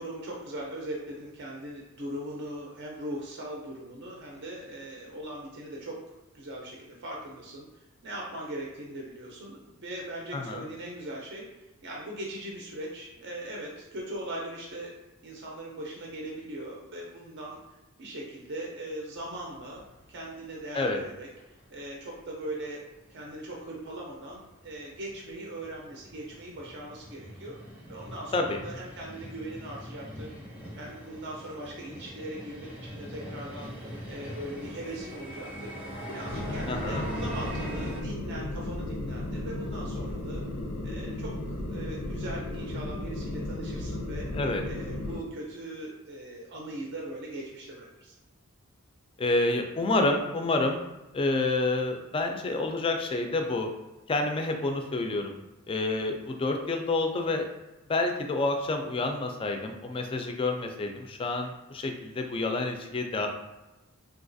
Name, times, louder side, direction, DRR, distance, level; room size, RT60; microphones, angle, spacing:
voice 1, 0.0-14.9 15.2-17.6 18.0-22.8 23.1-27.6 27.9-30.3 30.8-33.7 34.1-35.7 36.1-40.4 40.8-44.3 44.7-48.1, right 1 dB, 55° right, -2 dB, 0.5 m, -40 dB
voice 2, 10.3-10.6 20.7-21.0 28.3-28.6 36.7-37.0 44.3-44.6 49.2-50.8 51.1-53.7 54.1-55.3 55.7-57.5 57.9-63.3, left 2 dB, 25° left, 4 dB, 0.3 m, -28 dB
sound 1, 19.2-21.2 21.6-21.7 22.2-22.3 22.6-22.7 22.9-38.0, equal, 5° right, 0.7 m, -42 dB
sound 2, 36.3-45.2, left 1 dB, 85° left, 0.5 m, -35 dB
3.8 x 2.3 x 2.6 m, 1.0 s
head